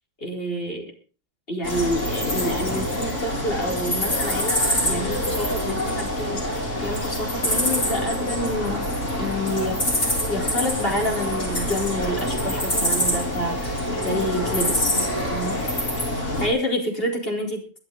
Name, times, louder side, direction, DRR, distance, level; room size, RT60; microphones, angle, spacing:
voice 1, 0.2-0.9 1.5-6.6 6.8-8.9 9.2-9.8 10.3-15.7 16.4-17.6, equal, 50° left, 0 dB, 4.6 m, -28 dB
sound 1, 1.6-16.5, left 1 dB, 80° left, 5.1 m, -25 dB
23.0 x 11.0 x 3.9 m, 0.37 s
omnidirectional pair, 1.3 m